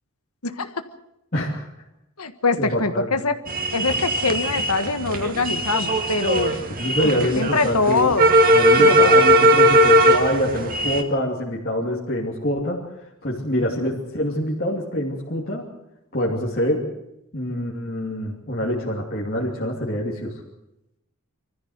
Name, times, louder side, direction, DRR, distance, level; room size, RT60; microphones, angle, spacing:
voice 1, 0.4-0.8 2.2-3.4 3.7-6.5 7.2-8.3 8.8-9.1, left 3 dB, 80° left, 10 dB, 1.5 m, -23 dB
voice 2, 1.3-1.7 2.6-3.1 6.8-8.1 8.5-12.8 13.2-15.7 16.1-16.8 17.3-20.4, equal, 45° left, -4 dB, 2.9 m, -25 dB
sound 1, 3.5-11.0, right 1 dB, 40° right, 2.1 m, -18 dB
25.0 x 14.5 x 8.0 m, 0.86 s
head